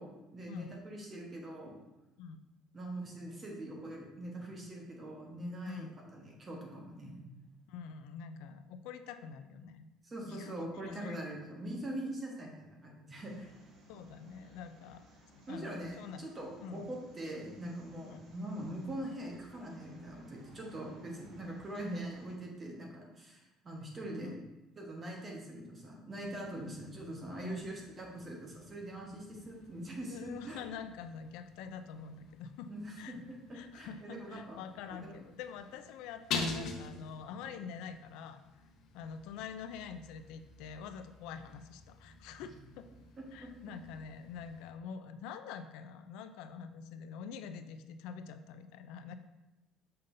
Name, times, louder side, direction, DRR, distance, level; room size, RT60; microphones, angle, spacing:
voice 1, 0.0-1.8 2.7-5.9 6.1-7.2 10.0-13.5 15.5-24.4 24.8-30.6 32.7-33.2 33.5-34.6 34.9-35.1 37.4-37.5, right 1 dB, 20° right, -1 dB, 1.2 m, -43 dB
voice 2, 5.7-6.0 7.7-9.9 10.3-11.3 13.9-15.0 15.5-16.2 16.6-16.9 18.0-18.2 24.2-24.4 27.4-27.7 30.1-32.7 32.9-33.2 33.5-38.4 38.9-42.9 43.3-49.1, left 6 dB, 85° left, 10 dB, 0.4 m, -46 dB
sound 1, 13.1-22.3, right 1 dB, 70° right, 1.9 m, -61 dB
sound 2, 26.2-44.7, left 4 dB, 60° left, 0.8 m, -47 dB
6.6 x 5.4 x 2.7 m, 1.0 s
cardioid pair, 160°, 0 cm